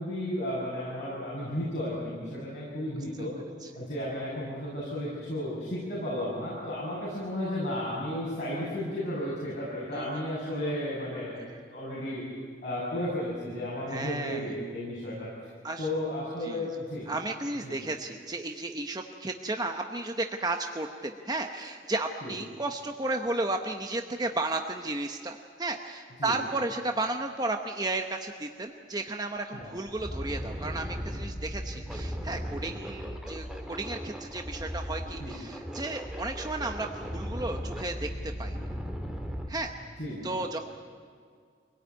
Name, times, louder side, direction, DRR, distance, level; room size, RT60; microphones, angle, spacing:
voice 1, 0.0-3.3 3.7-12.2 12.6-15.3 15.8-17.1 17.6-17.9 22.2-22.3 26.2-26.4 29.5-29.7 35.2-35.3 40.0-40.3, left 1 dB, 45° left, -7 dB, 6.7 m, -33 dB
voice 2, 13.9-14.5 15.6-15.9 16.4-16.7 17.1-38.6 39.5-39.7 40.2-40.6, right 2 dB, 20° right, 4 dB, 0.9 m, -33 dB
sound 1, 29.1-29.2 29.6-39.5, equal, 5° right, 1.7 m, -37 dB
25.0 x 17.5 x 9.5 m, 2.1 s
head